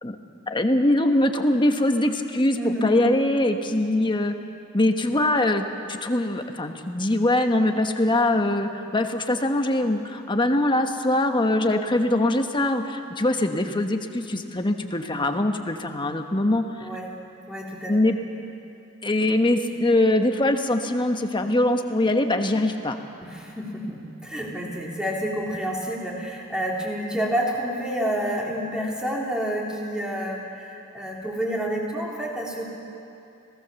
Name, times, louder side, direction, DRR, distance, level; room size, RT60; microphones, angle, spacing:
voice 1, 0.5-4.4 4.7-16.9 17.9-18.2 19.0-23.0, left 1 dB, 25° left, 5 dB, 1.2 m, -22 dB
voice 2, 2.5-2.9 16.8-17.1 17.5-18.2 23.2-32.6, equal, 5° right, -3 dB, 3.5 m, -29 dB
27.0 x 17.5 x 7.1 m, 2.7 s
head